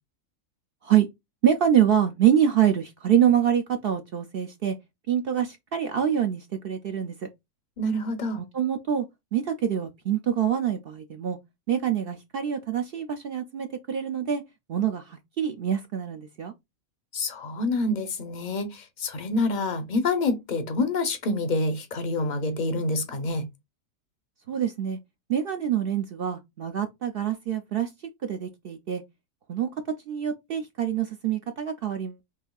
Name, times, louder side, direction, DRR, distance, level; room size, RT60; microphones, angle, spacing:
voice 1, 1.4-4.8 5.1-7.3 8.3-9.0 9.3-11.4 11.7-14.4 14.7-16.5 24.5-25.0 25.3-27.9 28.2-29.0 29.5-29.7 30.1-32.2, right 9 dB, 60° right, 0.6 m, -25 dB
voice 2, 7.8-8.4 17.1-23.4, left 2 dB, 45° left, 0.7 m, -27 dB
5.8 x 2.7 x 2.3 m
omnidirectional pair, 1.4 m